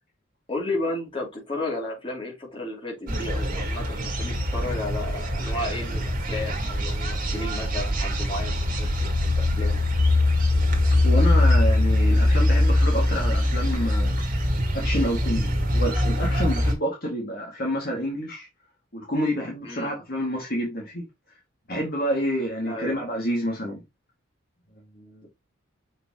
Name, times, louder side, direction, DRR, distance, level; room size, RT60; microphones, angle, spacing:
voice 1, 0.5-9.8 19.6-19.9 22.6-23.0, left 2 dB, 25° left, 3.0 m, -33 dB
sound 1, 3.1-16.7, left 1 dB, 40° right, 1.9 m, -23 dB
voice 2, 10.9-14.1 14.7-18.5 18.9-21.0 21.7-23.8 25.0-25.3, equal, 45° left, 2.3 m, -28 dB
6.5 x 5.1 x 3.0 m
head